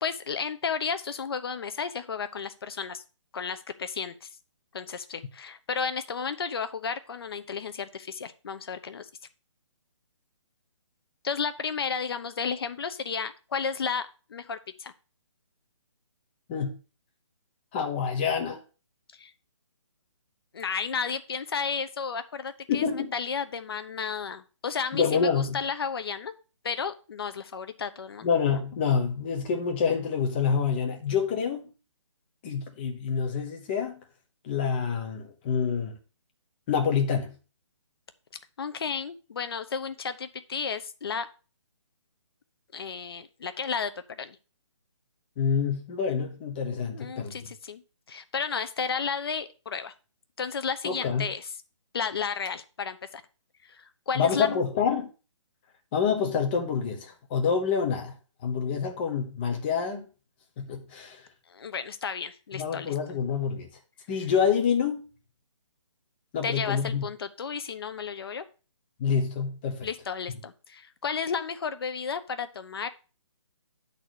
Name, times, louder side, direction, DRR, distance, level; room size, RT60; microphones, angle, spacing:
voice 1, 0.0-3.0 3.3-4.3 4.7-9.1 11.2-14.9 19.1-19.3 20.5-26.3 26.6-28.3 38.6-41.3 42.7-43.9 44.2-44.4 46.9-47.8 48.1-49.9 50.4-51.5 51.9-53.2 53.6-54.6 61.5-62.9 66.4-68.4 69.8-72.9, left 6 dB, 50° left, 0.8 m, -33 dB
voice 2, 17.7-18.6 22.7-23.1 24.9-25.6 28.2-31.7 32.4-34.0 34.4-36.0 36.7-37.4 45.4-47.5 50.8-51.3 54.1-55.1 55.9-58.2 58.4-60.1 60.6-61.2 62.5-63.7 64.1-65.1 66.3-67.0 69.0-69.9, left 6 dB, 20° left, 1.0 m, -27 dB
8.1 x 4.2 x 6.1 m
hypercardioid pair, 165°, 16 cm